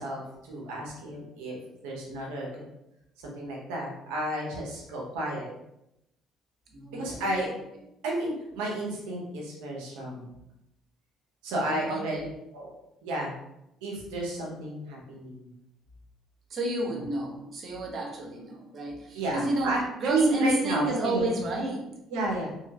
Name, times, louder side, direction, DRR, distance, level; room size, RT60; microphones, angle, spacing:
voice 1, 0.0-1.6 1.8-2.7 3.2-5.5 6.9-7.5 8.0-10.3 11.4-12.2 12.5-12.7 13.0-13.3 13.8-15.5 19.1-21.3 22.1-22.5, right 1 dB, 90° right, -2 dB, 1.0 m, -31 dB
voice 2, 6.7-7.4 11.5-12.3 16.5-21.9, right 1 dB, 50° right, -1 dB, 0.9 m, -31 dB
3.2 x 2.9 x 2.4 m, 0.85 s
supercardioid pair, 75°, 0 cm